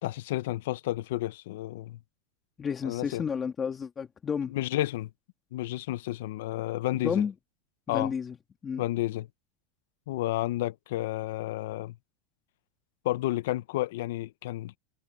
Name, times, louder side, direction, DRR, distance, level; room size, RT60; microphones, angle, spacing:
voice 1, 0.0-2.0 2.8-3.2 4.5-5.1 5.5-7.2 7.9-8.1 8.8-9.3 10.1-12.0 13.0-14.8, left 16 dB, 75° left, 0.7 m, -31 dB
voice 2, 2.6-4.5 6.9-7.3 7.9-8.4 8.6-8.8, left 6 dB, 20° left, 1.9 m, -31 dB
supercardioid pair, 140°, 0 cm